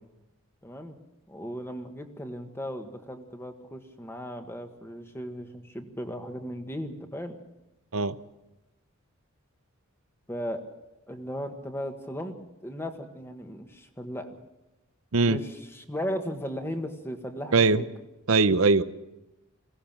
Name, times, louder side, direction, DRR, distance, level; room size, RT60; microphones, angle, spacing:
voice 1, 0.6-1.0 1.3-7.4 10.3-10.6 11.1-14.4 15.2-17.8, equal, 10° left, 6 dB, 1.5 m, -36 dB
voice 2, 18.3-18.8, right 4 dB, 65° right, 14 dB, 0.8 m, -21 dB
21.5 x 17.0 x 7.4 m, 0.99 s
head